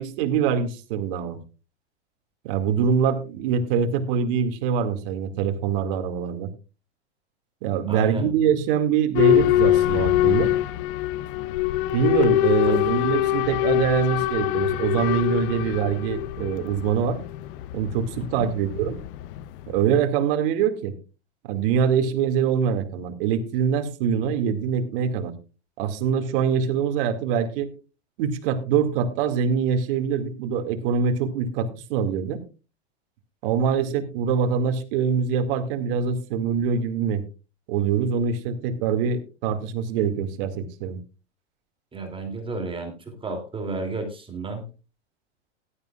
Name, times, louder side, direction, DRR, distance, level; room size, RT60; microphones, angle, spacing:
voice 1, 0.0-1.4 2.4-6.5 7.6-10.5 11.9-17.2 17.7-19.0 19.7-20.9 21.5-25.3 25.8-27.7 28.2-32.4 33.4-37.2 37.7-41.0, right 7 dB, 55° right, 7 dB, 2.3 m, -24 dB
voice 2, 7.9-8.3 12.7-12.8 18.4-18.5 41.9-44.6, right 3 dB, 15° right, 4 dB, 2.9 m, -32 dB
Boat Water vehicle / Alarm, 9.1-19.8, left 14 dB, 50° left, 0.7 m, -24 dB
16.5 x 12.5 x 2.4 m, 0.32 s
hypercardioid pair, 120°, 34 cm